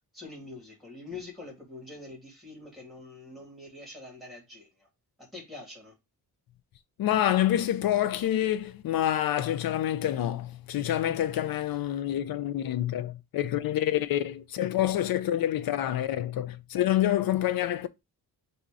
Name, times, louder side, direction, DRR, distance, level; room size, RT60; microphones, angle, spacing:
voice 1, 0.1-4.9 5.2-5.9, left 3 dB, ahead, 1.9 m, -45 dB
voice 2, 7.0-17.9, left 12 dB, 65° left, 0.5 m, -27 dB
4.2 x 2.7 x 4.6 m
wide cardioid pair, 165°, 39 cm